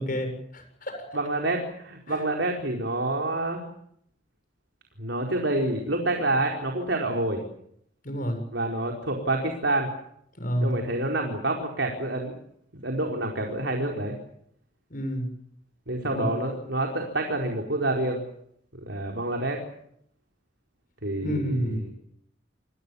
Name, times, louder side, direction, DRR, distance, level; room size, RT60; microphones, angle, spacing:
voice 1, 0.0-1.0 2.1-2.2 8.0-8.4 10.4-10.7 14.9-15.3 16.1-16.3 21.2-21.8, equal, 45° left, 6 dB, 7.3 m, -29 dB
voice 2, 1.1-3.6 5.0-7.4 8.5-9.9 10.6-12.3 12.8-14.1 15.9-18.2 18.9-19.6 21.0-21.8, right 2 dB, 65° right, 2 dB, 4.7 m, -27 dB
29.5 x 22.5 x 7.2 m, 0.70 s
head